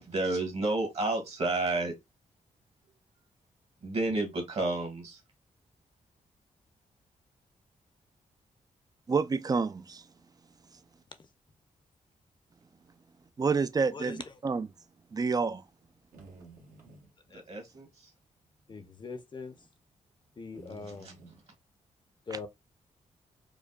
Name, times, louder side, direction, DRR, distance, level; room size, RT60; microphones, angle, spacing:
voice 1, 0.0-1.9 3.8-5.2 17.3-18.1 20.8-21.3, right 2 dB, 50° right, 1.6 m, -31 dB
voice 2, 9.1-10.0 13.4-14.7 15.1-15.6 22.3-22.4, right 5 dB, 30° right, 0.4 m, -28 dB
sound 1, 15.8-17.1 18.5-18.8 19.1-19.2 20.5-21.4, right 3 dB, 75° right, 1.4 m, -52 dB
voice 3, 18.7-19.5 20.4-21.1 22.3-22.5, left 4 dB, 35° left, 0.6 m, -41 dB
4.9 x 2.2 x 2.3 m
cardioid pair, 85°, 13 cm